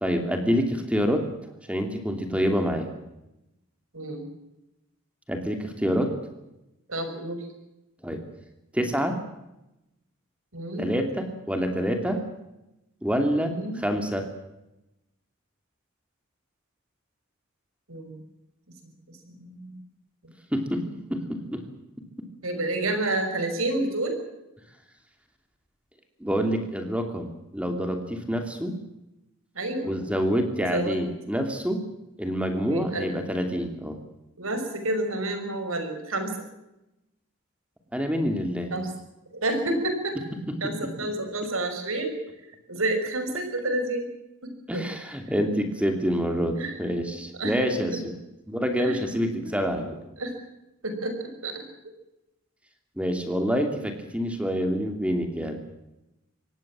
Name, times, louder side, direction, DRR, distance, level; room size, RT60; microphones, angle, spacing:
voice 1, 0.0-1.3 1.7-2.9 5.3-6.1 8.0-8.2 8.7-9.2 10.8-12.2 13.0-14.3 20.5-21.2 21.5-21.6 26.2-28.8 29.8-31.8 32.2-34.0 37.9-38.7 40.5-40.7 44.7-48.1 48.5-50.0 53.0-55.6, equal, 5° right, 5 dB, 2.7 m, -27 dB
voice 2, 3.9-4.2 6.9-7.5 10.5-10.9 13.4-13.8 17.9-18.2 19.1-19.8 20.2-20.3 22.4-24.2 29.5-29.9 30.6-31.0 32.7-33.1 34.4-36.4 38.7-38.9 39.3-40.2 40.6-42.2 42.7-44.1 44.4-44.9 46.5-47.0 47.4-48.0 48.8-49.9 50.2-50.3 50.8-51.6, right 2 dB, 80° right, 7 dB, 6.0 m, -30 dB
25.5 x 18.5 x 7.5 m, 0.92 s
head